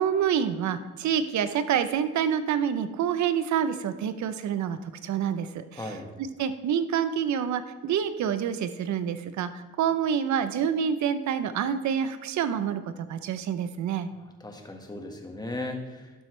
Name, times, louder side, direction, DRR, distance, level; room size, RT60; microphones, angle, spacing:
voice 1, 0.0-14.1, right 8 dB, 70° right, 12 dB, 0.7 m, -27 dB
voice 2, 5.8-6.1 14.4-16.1, left 2 dB, 15° left, 3 dB, 1.6 m, -36 dB
12.0 x 7.5 x 3.3 m, 1.1 s
cardioid pair, 90°, 30 cm